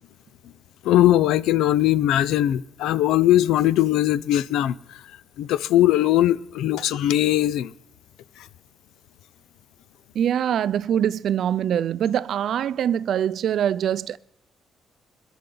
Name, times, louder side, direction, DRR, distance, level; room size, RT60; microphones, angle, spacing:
voice 1, 0.8-4.8 5.4-7.7, left 13 dB, 90° left, 0.4 m, -20 dB
voice 2, 10.1-14.2, right 9 dB, 70° right, 0.4 m, -23 dB
21.5 x 11.0 x 3.9 m
cardioid pair, 90°, 0 cm